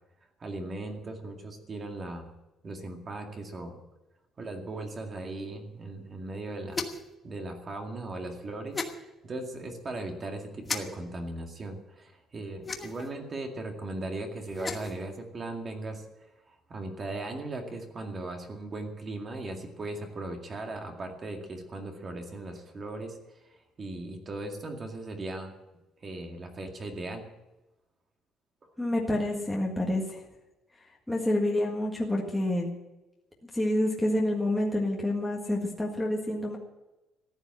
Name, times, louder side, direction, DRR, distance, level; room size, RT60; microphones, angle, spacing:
voice 1, 0.4-2.2 2.6-3.8 4.4-6.8 7.2-16.0 16.5-23.2 23.8-25.5 26.0-27.3, right 2 dB, 25° right, 3 dB, 2.1 m, -38 dB
sound 1, 6.7-7.1 8.7-8.9 10.6-10.8 12.6-13.1 14.4-15.0, left 4 dB, 20° left, 1.2 m, -34 dB
voice 2, 28.8-30.2 31.1-32.7 33.5-36.6, left 1 dB, 5° left, -2 dB, 1.8 m, -28 dB
14.5 x 10.5 x 7.9 m, 1.0 s
cardioid pair, 165°, 0 cm